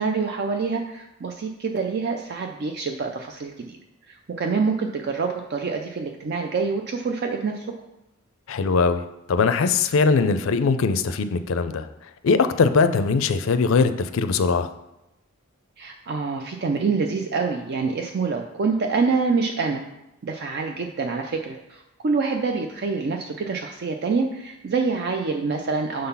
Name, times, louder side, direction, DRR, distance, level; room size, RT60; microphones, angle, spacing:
voice 1, 0.0-3.8 4.1-7.7 15.8-19.8 20.2-26.1, right 4 dB, 55° right, 3 dB, 0.4 m, -26 dB
voice 2, 8.5-11.9 12.2-14.7, left 4 dB, 70° left, 10 dB, 0.4 m, -21 dB
6.4 x 3.9 x 5.6 m, 0.92 s
head